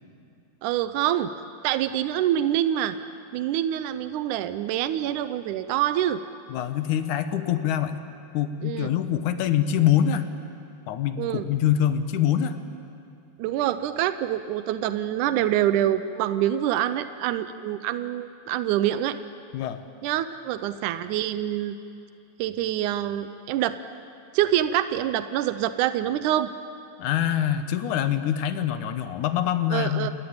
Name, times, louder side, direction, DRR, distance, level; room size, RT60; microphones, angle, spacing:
voice 1, 0.6-1.3 1.6-2.9 3.3-6.2 8.6-8.9 11.2-11.5 13.4-19.2 20.0-21.8 22.4-23.7 24.3-26.5 29.7-30.1, right 12 dB, 85° right, 11 dB, 1.7 m, -26 dB
voice 2, 6.5-8.0 8.3-10.3 10.9-12.6 19.5-19.8 27.0-30.1, left 10 dB, 70° left, 10 dB, 2.1 m, -24 dB
29.0 x 19.0 x 8.8 m, 2.7 s
omnidirectional pair, 4.4 m